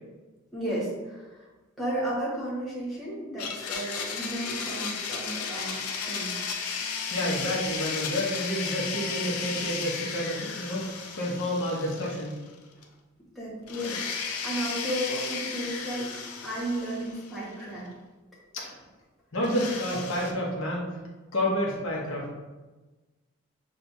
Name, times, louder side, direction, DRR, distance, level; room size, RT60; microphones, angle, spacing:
voice 1, 0.5-1.5 1.8-6.4 13.3-16.1 16.4-17.9, right 1 dB, ahead, -8 dB, 1.2 m, -33 dB
Domestic sounds home sounds, 3.4-12.6 12.8-12.9 13.7-17.6 19.4-20.3, left 5 dB, 80° left, 0.5 m, -34 dB
voice 2, 7.1-12.4 18.5-18.7 19.3-20.9 21.3-22.3, equal, 60° left, -3 dB, 0.9 m, -29 dB
6.3 x 2.3 x 2.6 m, 1.2 s
head